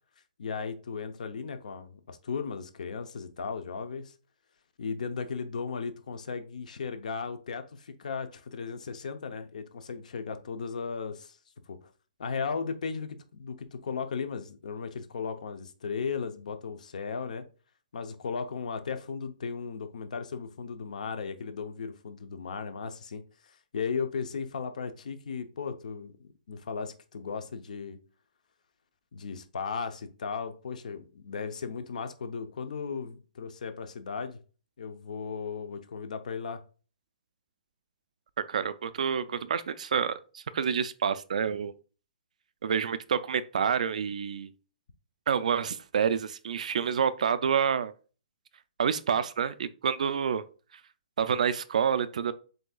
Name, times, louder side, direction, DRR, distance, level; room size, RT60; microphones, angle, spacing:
voice 1, 0.4-4.1 4.8-11.4 11.7-11.9 12.2-17.4 17.9-28.0 29.1-34.4 34.8-36.6, left 5 dB, 55° left, 0.7 m, -36 dB
voice 2, 38.5-41.7 42.6-44.5 45.3-47.9 48.8-50.4 51.2-52.3, right 7 dB, 55° right, 0.4 m, -28 dB
7.7 x 2.8 x 2.3 m
hypercardioid pair, 175°, 5 cm